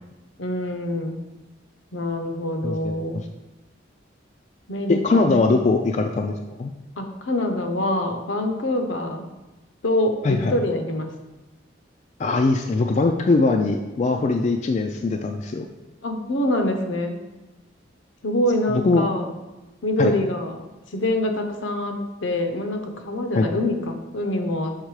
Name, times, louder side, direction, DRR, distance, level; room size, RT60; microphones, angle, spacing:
voice 1, 0.4-1.2 1.9-3.2 4.7-5.5 7.0-9.3 9.8-11.1 16.0-17.2 18.2-19.3 19.8-20.6 20.9-24.7, left 1 dB, 75° left, 5 dB, 0.8 m, -25 dB
voice 2, 2.6-2.9 4.9-6.3 6.6-6.7 10.2-10.5 12.2-15.7 18.7-19.0 20.0-20.1 23.3-23.5, left 3 dB, 35° left, 3 dB, 0.3 m, -21 dB
6.6 x 3.7 x 4.7 m, 1.1 s
head